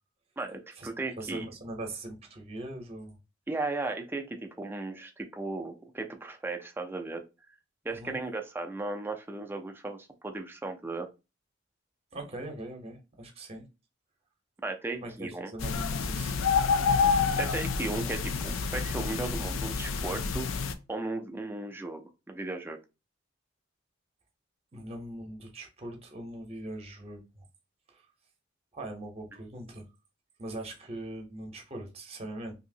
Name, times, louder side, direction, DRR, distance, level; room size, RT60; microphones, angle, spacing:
voice 1, 0.4-1.5 3.5-7.2 7.8-11.1 14.6-15.5 17.4-20.5 20.9-22.8, right 2 dB, 10° right, 0.4 m, -36 dB
voice 2, 1.2-3.2 7.9-8.2 12.1-13.6 15.0-16.5 24.7-27.4 27.9-28.0 28.7-29.9 30.4-32.5, right 1 dB, 30° right, 0.8 m, -41 dB
sound 1, 15.6-20.7, left 5 dB, 80° left, 0.4 m, -28 dB
2.9 x 2.7 x 2.7 m
head